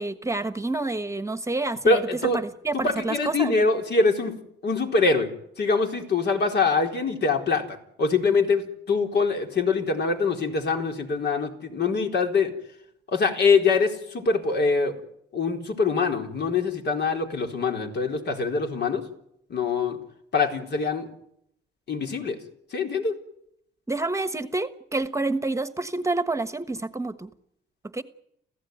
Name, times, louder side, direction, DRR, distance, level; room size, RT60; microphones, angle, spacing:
voice 1, 0.0-2.0 2.3-3.5 23.9-27.3 27.9-28.0, right 2 dB, 15° right, 11 dB, 1.3 m, -28 dB
voice 2, 1.8-2.4 2.7-4.4 4.6-5.3 5.6-7.6 8.0-12.5 13.1-14.9 15.3-19.0 19.5-20.0 20.3-21.1 21.9-22.4 22.7-23.1, left 4 dB, 60° left, 3 dB, 4.1 m, -24 dB
27.5 x 16.0 x 9.4 m, 0.78 s
cardioid pair, 90°, 20 cm